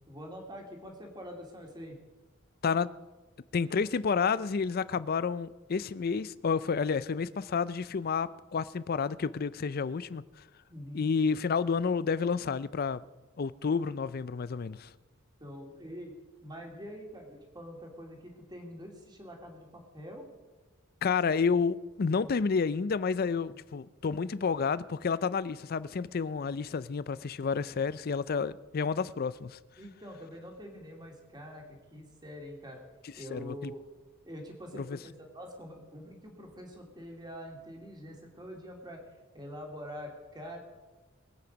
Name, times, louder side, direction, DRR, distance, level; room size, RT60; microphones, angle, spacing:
voice 1, 0.1-2.0 10.7-11.1 15.4-16.1 16.4-20.3 23.5-23.6 27.6-27.8 29.8-32.8 33.2-33.8 34.2-39.0 39.3-40.6, equal, 20° right, 2.5 m, -45 dB
voice 2, 3.5-10.2 10.9-13.0 13.4-14.9 21.0-29.6 33.3-33.7 34.7-35.0, left 5 dB, 45° left, 0.4 m, -30 dB
22.0 x 8.6 x 5.2 m
head